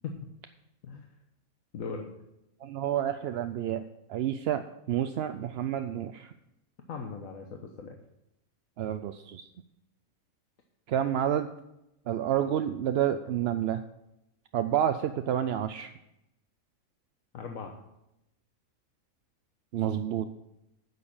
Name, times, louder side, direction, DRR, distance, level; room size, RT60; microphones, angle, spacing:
voice 1, 1.7-2.1 6.9-8.0 17.3-17.8, left 5 dB, 80° left, 3 dB, 1.4 m, -39 dB
voice 2, 2.6-3.8 4.1-4.6 4.9-6.3 8.8-9.4 10.9-11.5 12.1-13.8 14.5-15.9 19.7-20.3, right 10 dB, 65° right, 9 dB, 0.6 m, -29 dB
9.7 x 6.7 x 7.1 m, 0.86 s
omnidirectional pair, 1.4 m